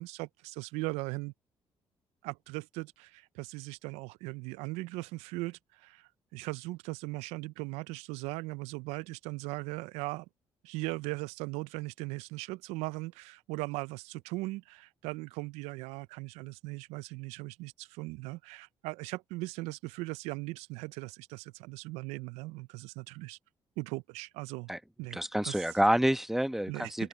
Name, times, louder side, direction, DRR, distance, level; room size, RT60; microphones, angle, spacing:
voice 1, 0.0-1.3 2.2-10.3 10.6-23.4 23.8-24.7 25.0-25.6 26.7-27.1, right 22 dB, 90° right, 0.4 m, -39 dB
voice 2, 25.1-27.1, equal, 5° right, 1.0 m, -28 dB
open air
supercardioid pair, 60°, 11 cm